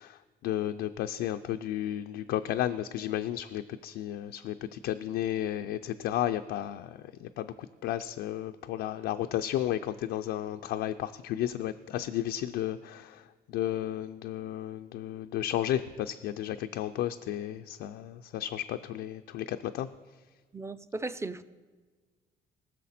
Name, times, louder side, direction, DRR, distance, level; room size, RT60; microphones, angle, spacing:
voice 1, 0.0-13.2 13.5-19.9, left 12 dB, 80° left, 0.4 m, -33 dB
voice 2, 20.5-21.4, right 2 dB, 15° right, 0.6 m, -36 dB
19.0 x 6.4 x 4.2 m
supercardioid pair, 70°, 17 cm